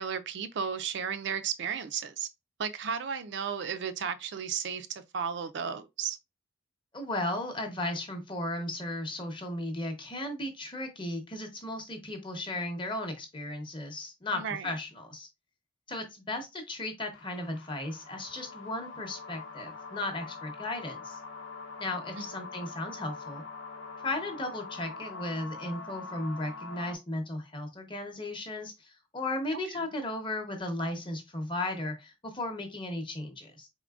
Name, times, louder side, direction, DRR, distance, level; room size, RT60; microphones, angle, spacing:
voice 1, 0.0-2.3 2.6-6.2 14.3-14.7 22.2-22.3, right 7 dB, 60° right, 0.4 m, -34 dB
voice 2, 6.9-15.3 15.9-21.2 21.8-23.4 24.0-33.7, left 1 dB, 25° left, 0.8 m, -35 dB
sound 1, 17.1-27.0, left 4 dB, 80° left, 0.8 m, -44 dB
4.0 x 3.7 x 2.4 m
head